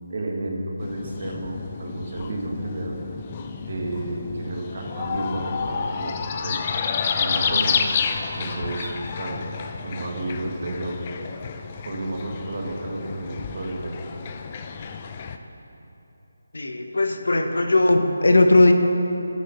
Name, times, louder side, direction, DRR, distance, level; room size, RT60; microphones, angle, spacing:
voice 1, 0.1-3.0 3.7-6.1 6.4-6.6 7.1-7.7 8.4-9.5 9.8-11.0 11.8-13.9, right 2 dB, 55° right, 0 dB, 1.7 m, -31 dB
sound 1, 0.8-15.4, left 6 dB, 30° left, 0.5 m, -30 dB
voice 2, 16.5-18.7, left 2 dB, 75° left, 6 dB, 0.8 m, -18 dB
15.5 x 6.2 x 4.2 m, 3.0 s
figure-of-eight pair, 155°, 0 cm